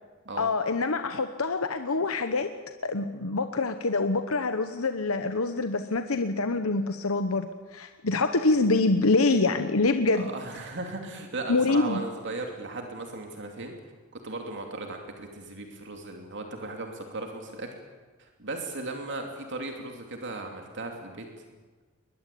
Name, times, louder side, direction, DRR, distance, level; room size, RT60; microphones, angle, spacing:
voice 1, 0.4-2.5 2.8-10.3 11.5-12.0, left 3 dB, 80° left, 8 dB, 1.0 m, -25 dB
voice 2, 10.1-13.7 14.1-17.7 18.2-21.3, right 2 dB, 60° right, 3 dB, 2.8 m, -37 dB
22.0 x 21.0 x 8.5 m, 1.4 s
head